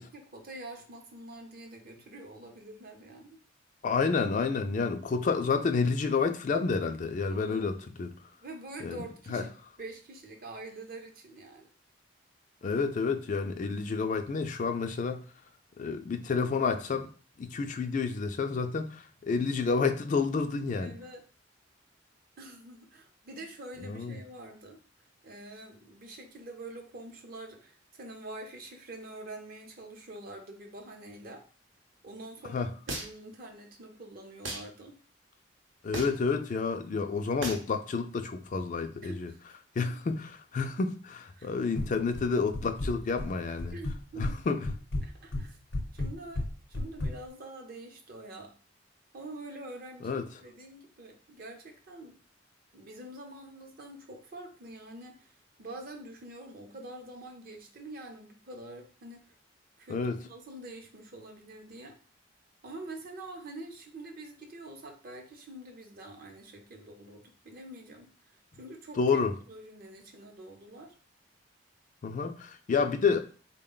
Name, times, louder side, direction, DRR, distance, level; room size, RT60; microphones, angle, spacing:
voice 1, 0.0-3.4 7.3-7.7 8.4-9.5 9.8-11.7 20.8-21.2 22.4-24.8 25.2-31.4 32.0-35.0 39.0-39.4 39.8-40.0 41.3-41.5 43.7-44.4 45.0-45.6 45.9-48.5 49.1-52.2 52.7-59.3 59.8-62.0 62.6-69.2 69.5-70.9, right 2 dB, 50° right, 0.7 m, -46 dB
voice 2, 3.8-8.1 8.8-9.0 9.3-9.4 12.6-15.2 15.8-17.1 17.4-21.0 23.8-24.2 32.5-32.7 35.8-39.3 39.8-40.2 40.5-43.8 44.2-44.6 50.0-50.2 59.9-60.2 69.0-69.3 72.0-73.2, left 4 dB, 40° left, 0.3 m, -29 dB
sound 1, 32.9-33.3 34.4-34.7 35.9-36.3 37.4-37.7, right 2 dB, 90° right, 0.8 m, -36 dB
sound 2, 41.8-42.3 42.5-43.3 43.6-44.4 44.6-47.1, left 2 dB, 75° left, 0.7 m, -32 dB
3.7 x 2.2 x 3.8 m
head